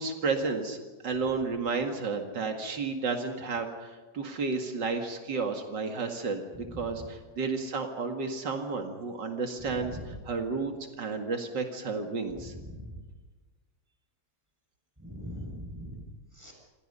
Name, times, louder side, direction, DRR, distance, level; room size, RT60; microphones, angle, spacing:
voice 1, 0.0-6.4 6.8-12.5, right 4 dB, 85° right, 4 dB, 2.8 m, -32 dB
voice 2, 9.6-10.0 12.5-12.9 15.0-16.0 16.4-16.5, left 1 dB, 10° right, 0 dB, 7.1 m, -41 dB
28.5 x 27.0 x 5.6 m, 1.3 s
omnidirectional pair, 1.9 m